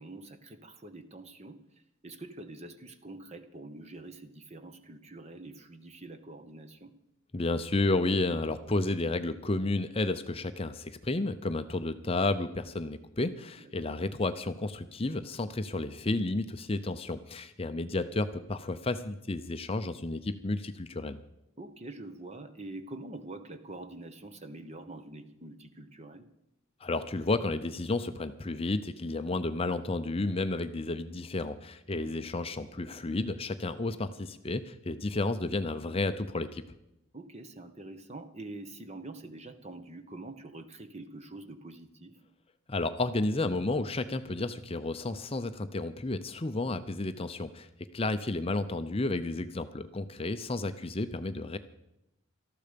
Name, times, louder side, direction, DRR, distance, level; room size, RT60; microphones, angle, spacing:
voice 1, 0.0-1.6 2.0-6.9 13.6-14.0 21.6-26.3 31.9-32.1 37.1-42.2, right 2 dB, 30° right, 9 dB, 1.1 m, -45 dB
voice 2, 7.3-21.2 26.8-36.6 42.7-47.7 47.9-51.6, left 2 dB, 25° left, 10 dB, 0.6 m, -32 dB
18.5 x 13.5 x 5.2 m, 0.84 s
head